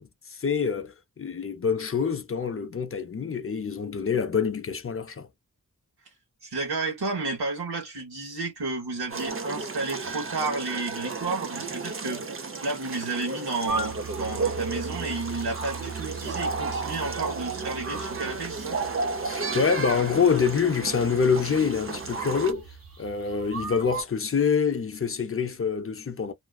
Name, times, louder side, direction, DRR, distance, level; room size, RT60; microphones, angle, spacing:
voice 1, 0.0-5.3 19.2-22.7 23.0-26.3, left 6 dB, 35° left, 0.5 m, -26 dB
voice 2, 6.4-12.2 12.6-18.8, right 3 dB, 80° right, 1.1 m, -32 dB
sound 1, 9.1-22.5, right 4 dB, 35° right, 0.5 m, -33 dB
sound 2, 13.7-24.0, right 4 dB, 60° right, 1.2 m, -39 dB
2.5 x 2.2 x 2.3 m
cardioid pair, 50°, 38 cm